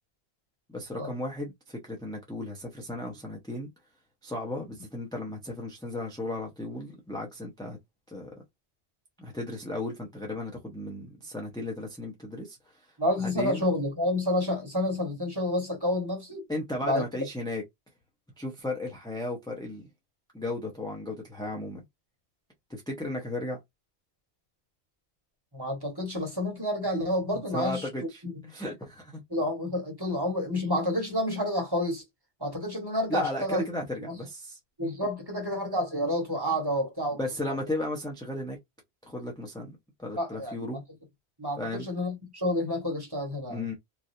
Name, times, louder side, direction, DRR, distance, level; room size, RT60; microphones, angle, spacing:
voice 1, 0.7-3.7 4.2-7.8 8.1-8.3 9.2-12.6 13.2-13.6 16.5-17.6 18.4-19.9 20.3-21.8 22.7-23.6 27.5-28.2 28.5-29.2 33.1-34.6 37.2-38.6 39.0-40.8 41.6-41.9 43.5-43.7, left 1 dB, 5° left, 0.7 m, -35 dB
voice 2, 13.0-16.4 16.8-17.0 25.5-27.9 28.2-28.3 29.3-32.0 32.4-33.6 34.0-34.1 34.8-37.2 40.1-40.6 41.4-43.7, left 1 dB, 20° right, 1.3 m, -29 dB
3.1 x 2.6 x 2.6 m
omnidirectional pair, 1.1 m